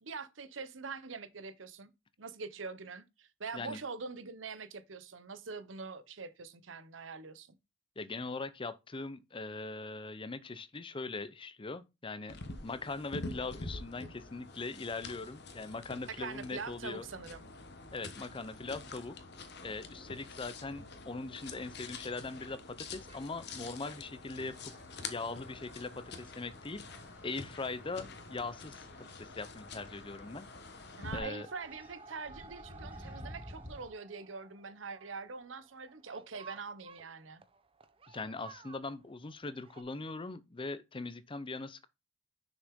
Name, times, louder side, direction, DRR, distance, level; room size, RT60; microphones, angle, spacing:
voice 1, 0.0-1.9 2.2-7.5 16.2-17.5 31.0-37.4, right 4 dB, 85° right, 0.9 m, -44 dB
voice 2, 8.0-12.4 12.6-17.0 17.9-19.2 19.6-24.7 25.0-26.8 27.2-28.9 29.2-30.5 31.1-31.5 38.1-41.9, left 3 dB, 25° left, 0.6 m, -41 dB
sound 1, 12.3-31.2, left 3 dB, 60° left, 1.3 m, -47 dB
sound 2, 21.3-22.7 23.1-23.6 24.1-26.2 26.6-26.7 26.9-27.0 27.3-27.4 28.8-29.0 29.2-29.7 30.0-30.5 30.9-39.8, right 4 dB, 30° right, 0.7 m, -57 dB
sound 3, 24.4-33.9, equal, 10° right, 2.2 m, -54 dB
6.4 x 6.3 x 3.7 m
head